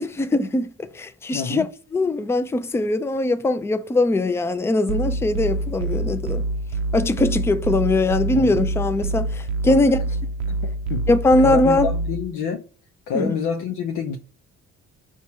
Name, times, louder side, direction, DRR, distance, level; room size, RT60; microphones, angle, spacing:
voice 1, 0.0-1.7 1.9-6.4 6.9-10.0 11.1-11.9 13.1-13.3, left 2 dB, 10° left, 0.3 m, -21 dB
voice 2, 1.3-1.7 8.2-8.6 9.7-9.8 10.9-11.1 11.4-12.6 13.1-14.2, left 6 dB, 80° left, 0.6 m, -27 dB
sound 1, 4.9-12.2, right 2 dB, 70° right, 0.5 m, -26 dB
4.3 x 2.3 x 4.2 m
cardioid pair, 90°, 30 cm